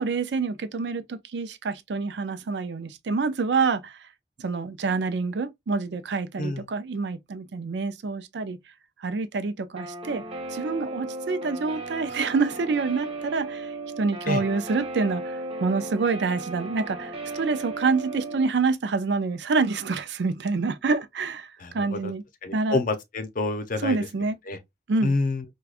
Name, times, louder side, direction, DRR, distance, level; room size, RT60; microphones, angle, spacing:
voice 1, 0.0-4.1 4.4-8.6 9.0-10.2 10.5-22.2 22.5-22.8 23.8-24.4 24.9-25.1, right 4 dB, 75° right, 0.5 m, -27 dB
Guitar, 9.8-18.5, right 2 dB, 35° right, 0.9 m, -36 dB
voice 2, 21.6-22.1 22.4-24.0 24.5-24.6 25.0-25.4, left 3 dB, 50° left, 0.7 m, -27 dB
4.7 x 2.3 x 2.4 m
head